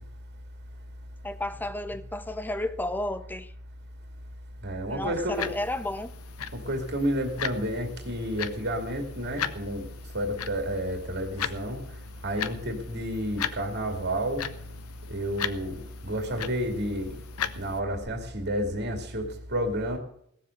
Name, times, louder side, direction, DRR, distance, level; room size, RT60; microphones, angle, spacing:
voice 1, 1.2-3.5 4.9-6.1, left 1 dB, 10° left, 0.7 m, -32 dB
voice 2, 4.6-5.5 6.5-9.9 10.1-11.8 12.2-14.5 15.1-17.2 17.6-20.0, equal, 50° right, 2.5 m, -30 dB
sound 1, 5.3-17.8, left 8 dB, 80° left, 0.8 m, -38 dB
17.5 x 7.6 x 6.6 m
head